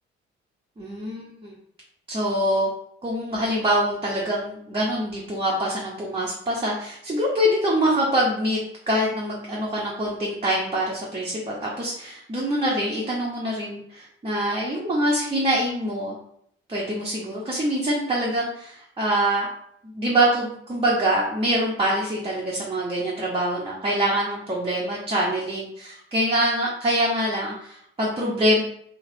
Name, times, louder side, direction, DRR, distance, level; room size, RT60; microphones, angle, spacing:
voice 1, 0.8-1.5 2.1-2.7 3.0-8.6 8.9-16.1 16.7-19.5 19.8-28.6, right 1 dB, 20° right, -5 dB, 0.9 m, -24 dB
3.2 x 2.8 x 2.7 m, 0.68 s
figure-of-eight pair, 45°, 30 cm